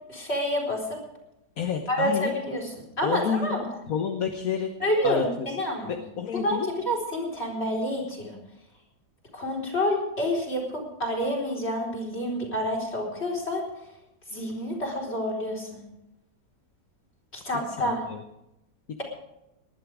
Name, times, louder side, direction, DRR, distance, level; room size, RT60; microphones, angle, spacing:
voice 1, 0.1-1.0 1.9-3.7 4.8-5.9 6.4-8.4 9.3-13.7 14.3-15.8 17.3-18.1, equal, 40° left, -1 dB, 4.5 m, -28 dB
voice 2, 1.6-2.3 3.0-4.7 5.0-5.5 5.9-6.7 17.8-18.2, left 7 dB, 60° left, 5 dB, 1.5 m, -29 dB
19.5 x 11.5 x 4.9 m, 0.87 s
omnidirectional pair, 1.8 m